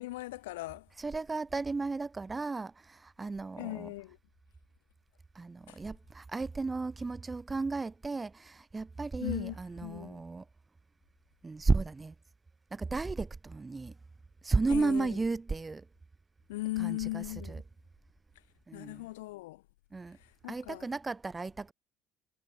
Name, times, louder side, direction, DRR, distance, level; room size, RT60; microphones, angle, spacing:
voice 1, 0.0-0.9 3.6-4.2 5.7-5.8 9.2-10.2 14.7-15.2 16.5-17.6 18.7-19.6 20.1-20.9, left 18 dB, 80° left, 3.6 m, -38 dB
voice 2, 1.0-3.9 5.4-10.5 11.4-12.2 12.7-14.0 14.4-15.9 16.8-17.6 18.7-19.1 19.9-20.2 20.5-21.7, right 3 dB, 25° right, 1.9 m, -34 dB
hypercardioid pair, 60°, 0 cm